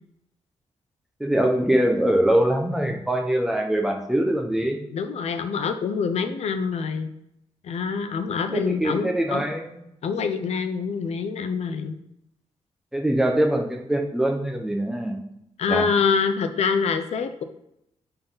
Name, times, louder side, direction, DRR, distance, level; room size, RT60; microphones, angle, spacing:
voice 1, 1.2-4.8 8.5-9.8 12.9-15.2 15.7-15.9, right 1 dB, 5° right, 2 dB, 1.2 m, -23 dB
voice 2, 4.9-7.1 7.6-9.4 10.0-12.0 15.6-17.4, left 5 dB, 70° left, 9 dB, 0.7 m, -25 dB
9.5 x 4.2 x 4.1 m, 0.82 s
wide cardioid pair, 155°, 11 cm